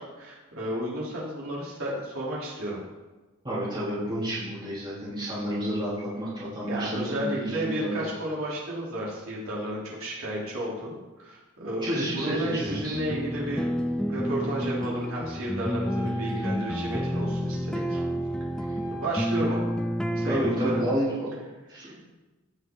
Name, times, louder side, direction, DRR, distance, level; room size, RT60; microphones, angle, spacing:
voice 1, 0.0-2.8 6.6-13.7 14.1-18.0 19.0-19.6 20.1-20.8 21.7-21.9, right 1 dB, 75° right, -6 dB, 3.3 m, -32 dB
voice 2, 3.4-8.1 11.8-13.0 20.3-21.3 21.7-21.9, equal, 20° right, -13 dB, 2.9 m, -30 dB
sound 1, 12.7-21.0, equal, 5° left, 0.4 m, -29 dB
Wind instrument woodwind instrument, 15.8-20.4, left 2 dB, 70° left, 1.4 m, -43 dB
16.0 x 6.2 x 3.8 m, 1.2 s
head